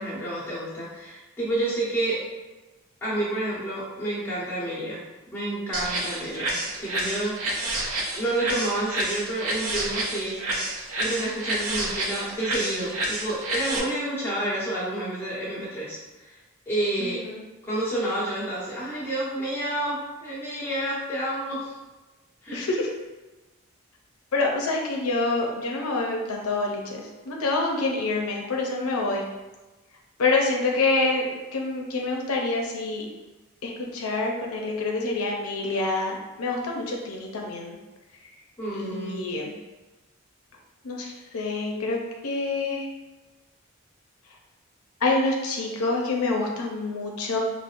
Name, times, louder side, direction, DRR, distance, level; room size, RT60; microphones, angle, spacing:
voice 1, 0.0-2.2 3.0-5.0 5.3-7.8 8.1-10.4 11.0-16.0 16.7-17.2 17.6-21.7 22.4-22.7 38.6-39.2, right 1 dB, 10° left, -10 dB, 1.3 m, -29 dB
sound 1, 5.7-13.8, right 1 dB, 85° right, 0.7 m, -29 dB
voice 2, 17.0-17.4 22.5-22.9 24.3-29.2 30.2-33.1 33.6-37.8 38.7-39.5 40.8-42.8 45.0-47.4, left 3 dB, 85° left, 0 dB, 0.6 m, -27 dB
5.8 x 2.1 x 2.5 m, 1.1 s
head